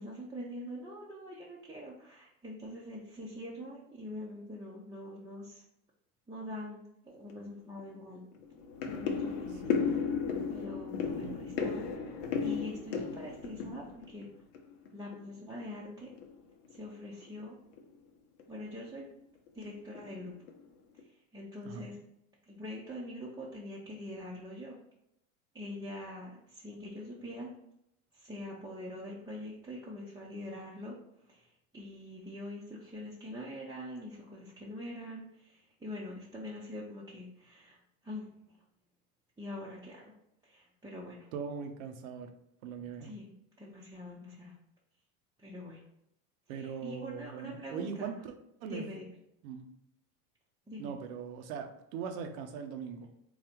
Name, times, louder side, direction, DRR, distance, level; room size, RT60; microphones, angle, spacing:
voice 1, 0.0-5.6 6.3-8.2 8.8-10.1 10.5-11.8 12.4-14.3 14.9-16.1 16.7-17.6 18.5-19.1 19.5-20.3 21.3-22.0 22.5-24.8 25.5-27.5 28.1-31.0 31.3-38.3 39.4-40.1 40.4-41.3 43.0-43.3 43.6-44.6 45.4-45.8 46.5-48.1 48.6-49.1 50.7-50.9, left 1 dB, 10° right, -6 dB, 0.6 m, -44 dB
sound 1, 7.3-7.4 7.8-8.0 8.3-14.9 15.1-15.8 16.1-16.3 16.6-16.8 17.2-17.4 17.7-17.9 18.4-18.9 19.5-19.6 19.9-20.6 21.0-21.1, left 6 dB, 65° left, 0.8 m, -35 dB
voice 2, 9.6-10.0 11.2-11.3 21.6-21.9 41.3-42.3 42.6-43.1 46.5-48.3 48.6-48.9 49.4-49.7 50.8-53.1, right 6 dB, 75° right, 6 dB, 0.8 m, -40 dB
3.9 x 2.3 x 4.3 m, 0.79 s
hypercardioid pair, 95°, 41 cm